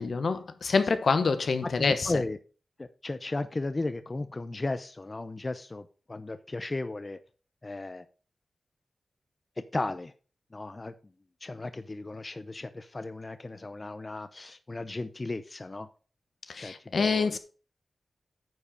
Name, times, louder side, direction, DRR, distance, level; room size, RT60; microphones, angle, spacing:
voice 1, 0.0-2.2 16.5-17.4, left 4 dB, 75° left, 1.0 m, -26 dB
voice 2, 1.8-2.4 2.8-7.2 7.6-8.0 9.7-10.1 10.5-10.9 11.4-15.9 16.6-17.4, left 2 dB, 35° left, 0.7 m, -35 dB
9.7 x 4.9 x 5.0 m
wide cardioid pair, 75°, 0 cm